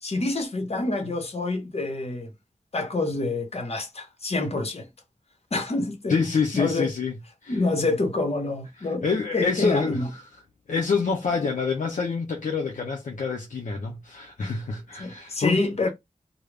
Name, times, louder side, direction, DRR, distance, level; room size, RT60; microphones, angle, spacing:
voice 1, 0.0-2.3 2.7-4.9 5.5-6.2 6.5-6.9 7.5-9.0 9.3-10.1 14.4-14.5 15.0-15.9, left 2 dB, 50° left, 0.9 m, -27 dB
voice 2, 6.1-7.1 7.4-7.5 9.0-10.2 10.7-15.6, left 5 dB, 75° left, 0.5 m, -26 dB
2.3 x 2.1 x 3.2 m
cardioid pair, 45°, 13 cm